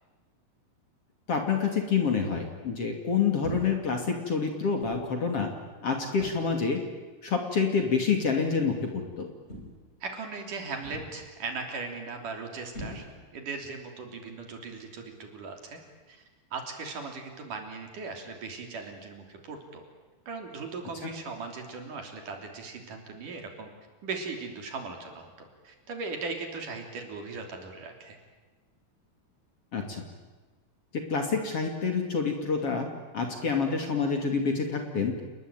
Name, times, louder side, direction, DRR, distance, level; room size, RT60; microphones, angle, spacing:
voice 1, 1.3-5.5 5.8-6.8 7.2-9.3 21.0-21.1 29.7-30.0 30.9-32.9 33.1-35.2, left 5 dB, 40° left, 4 dB, 3.2 m, -27 dB
sound 1, 3.4-3.9 4.8-5.1 6.2-6.7 7.8-8.0 9.5-10.0 10.8-11.3 12.7-13.4, equal, 15° left, 5.3 m, -42 dB
voice 2, 10.0-13.1 13.3-15.8 16.1-16.2 16.5-19.8 20.3-23.7 24.0-28.2, right 4 dB, 55° right, 3 dB, 4.7 m, -38 dB
30.0 x 20.5 x 9.2 m, 1.3 s
omnidirectional pair, 4.4 m